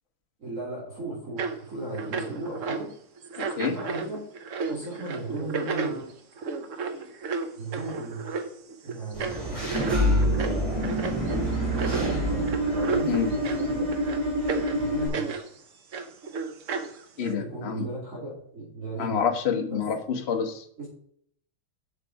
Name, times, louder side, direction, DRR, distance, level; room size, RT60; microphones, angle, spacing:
voice 1, 0.4-2.9 3.6-4.2 4.7-6.0 7.6-8.2 8.8-9.4 11.1-13.9 14.7-15.4 17.2-19.2 19.7-19.8 20.8-20.9, right 2 dB, 35° right, -7 dB, 3.4 m, -36 dB
sound 1, 1.4-1.6 1.9-2.9 3.2-15.5 15.9-17.3, right 4 dB, 55° right, 0.9 m, -33 dB
voice 2, 3.4-3.8 13.1-13.3 17.2-17.9 19.0-20.6, left 7 dB, 40° left, 5 dB, 1.0 m, -27 dB
Engine / Mechanisms, 9.1-15.1, equal, 15° right, 3.3 m, -26 dB
7.9 x 6.7 x 4.8 m, 0.64 s
omnidirectional pair, 2.3 m